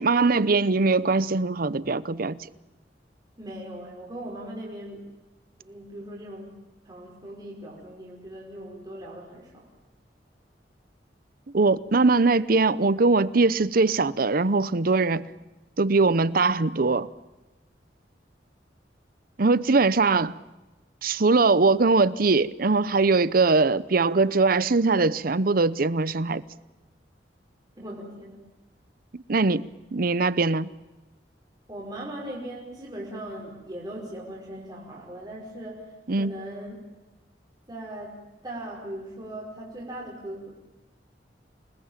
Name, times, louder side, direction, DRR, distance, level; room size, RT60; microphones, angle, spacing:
voice 1, 0.0-2.4 11.5-15.3 15.8-17.1 19.4-20.4 21.0-26.4 29.1-30.7 36.1-36.3, right 3 dB, 55° right, 0.8 m, -21 dB
voice 2, 3.4-5.0 5.6-6.6 6.8-9.7 27.8-28.5 31.7-36.8 37.7-40.5, right 1 dB, 25° right, 5.3 m, -39 dB
27.0 x 20.5 x 9.0 m
head